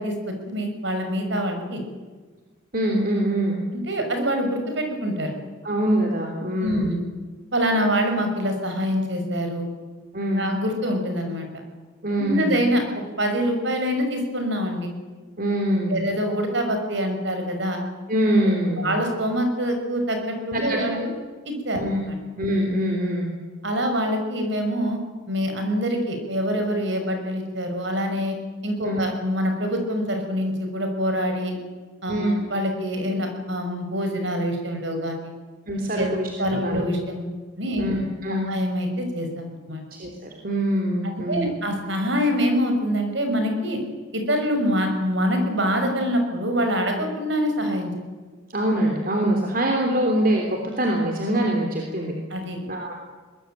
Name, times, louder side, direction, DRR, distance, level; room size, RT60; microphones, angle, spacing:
voice 1, 0.0-1.8 3.9-5.3 6.6-7.0 7.5-9.7 10.4-11.5 12.2-12.8 13.2-14.9 15.9-17.8 18.8-21.1 21.5-21.8 22.1-22.2 23.6-25.0 25.3-28.4 28.6-31.6 32.0-35.3 35.9-36.1 36.4-37.3 37.6-37.9 38.5-39.8 41.1-43.8 44.1-47.9 52.3-52.6, equal, 60° right, 5 dB, 5.9 m, -25 dB
voice 2, 2.7-3.6 5.6-6.9 10.1-10.4 12.0-12.6 15.4-16.0 18.1-18.9 20.5-21.0 21.8-22.0 22.4-23.3 28.8-29.0 32.1-32.4 35.7-36.8 37.8-38.5 40.0-41.5 48.5-52.1 52.7-52.9, right 1 dB, 45° right, 1 dB, 3.4 m, -24 dB
23.0 x 20.5 x 9.1 m, 1.4 s
head